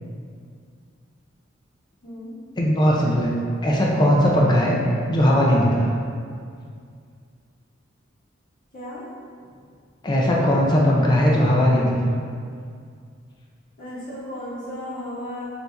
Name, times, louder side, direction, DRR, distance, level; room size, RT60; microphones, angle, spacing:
voice 1, 2.0-2.3 8.7-9.0 13.8-15.4, left 1 dB, 45° left, -10 dB, 1.0 m, -34 dB
voice 2, 2.6-3.3 3.6-4.8 5.1-5.9 10.0-12.1, equal, 20° left, -3 dB, 0.4 m, -18 dB
4.3 x 2.7 x 3.4 m, 2.2 s
head